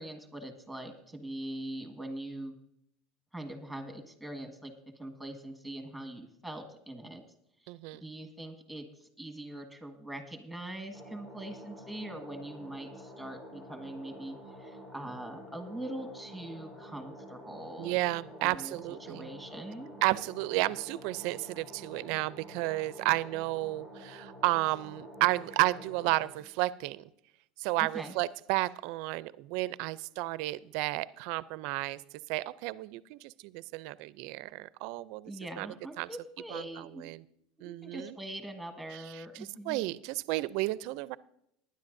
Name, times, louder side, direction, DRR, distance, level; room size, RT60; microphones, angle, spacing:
voice 1, 0.0-2.5 3.3-7.2 7.6-18.0 18.4-19.9 27.8-28.1 35.3-37.1 37.6-39.8, right 1 dB, ahead, 6 dB, 1.6 m, -42 dB
voice 2, 7.7-8.0 17.8-19.3 20.0-27.1 27.6-32.0 32.3-35.7 36.0-36.1 36.5-37.2 37.6-38.2 38.9-41.2, right 19 dB, 65° right, 18 dB, 0.4 m, -32 dB
sound 1, 10.9-26.3, equal, 30° left, 3.0 m, -49 dB
19.0 x 10.5 x 2.6 m, 0.77 s
supercardioid pair, 125°, 0 cm